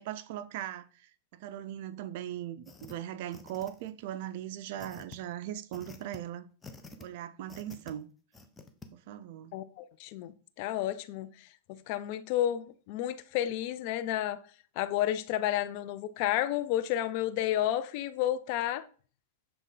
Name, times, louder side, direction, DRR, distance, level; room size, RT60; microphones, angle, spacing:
voice 1, 0.0-6.5 7.0-8.1 8.9-9.5, right 11 dB, 60° right, 0.5 m, -39 dB
sound 1, 2.7-2.9 3.3-4.0 4.8-5.2 5.7-6.2 6.6-7.1 7.5-7.9 8.3-8.9, left 4 dB, 15° left, 0.7 m, -48 dB
voice 2, 9.5-14.4 14.8-18.9, left 12 dB, 50° left, 0.5 m, -31 dB
6.8 x 3.6 x 3.9 m
hypercardioid pair, 125°, 0 cm